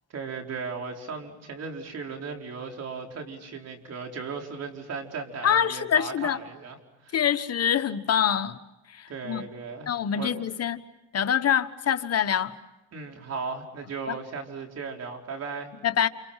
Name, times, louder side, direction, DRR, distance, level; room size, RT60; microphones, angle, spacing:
voice 1, 0.1-6.8 7.0-7.2 9.1-10.4 12.9-15.7, right 4 dB, 55° right, 4.7 m, -36 dB
voice 2, 5.4-6.4 7.1-8.6 8.9-9.4 9.9-10.8 11.1-12.5 14.1-14.2 15.8-16.1, left 9 dB, 55° left, 1.3 m, -25 dB
29.5 x 28.5 x 5.8 m
cardioid pair, 90°, 30 cm